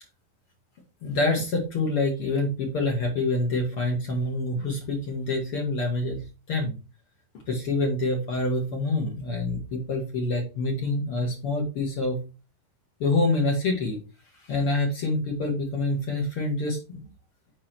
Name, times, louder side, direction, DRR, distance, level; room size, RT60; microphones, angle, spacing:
voice 1, 1.0-6.7 7.5-12.2 13.0-14.0 14.5-17.0, left 2 dB, 60° left, 0 dB, 1.4 m, -26 dB
7.3 x 4.7 x 4.4 m, 0.31 s
omnidirectional pair, 5.0 m